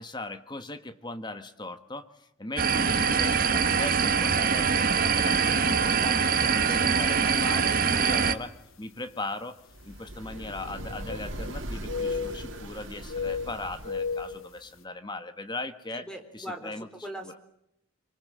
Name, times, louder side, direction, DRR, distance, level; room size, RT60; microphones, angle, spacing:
voice 1, 0.0-9.6 9.8-16.1 16.3-16.9 17.2-17.3, left 2 dB, 20° left, 10 dB, 1.4 m, -38 dB
sound 1, 2.6-8.3, right 6 dB, 45° right, 1.5 m, -24 dB
sound 2, 7.4-7.6 8.3-8.4 10.3-11.6 11.8-12.7 13.1-14.5, left 5 dB, 75° left, 1.7 m, -34 dB
sound 3, 9.7-14.4, right 1 dB, 60° right, 2.8 m, -40 dB
voice 2, 15.9-17.4, equal, 5° left, 5 dB, 3.9 m, -40 dB
25.5 x 25.5 x 7.5 m, 0.79 s
head